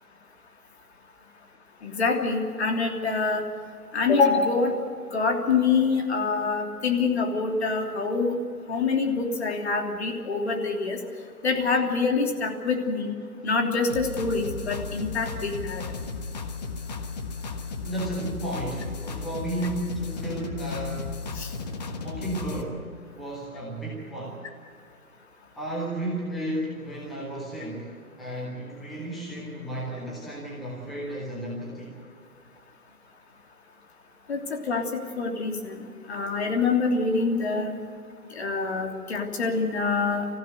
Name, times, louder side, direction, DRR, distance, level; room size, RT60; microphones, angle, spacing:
voice 1, 1.8-3.4 3.9-4.7 5.1-8.3 8.7-11.0 11.4-13.1 13.4-15.8 21.3-21.5 34.3-34.9 35.2-35.8 36.1-37.7 38.3-40.3, left 4 dB, 45° left, 2 dB, 3.2 m, -25 dB
sound 1, 13.9-22.6, left 4 dB, 25° left, 1.3 m, -35 dB
voice 2, 17.8-21.1 22.0-24.4 25.6-31.9, right 1 dB, ahead, -5 dB, 0.6 m, -33 dB
25.0 x 15.0 x 8.0 m, 2.3 s
hypercardioid pair, 160°, 46 cm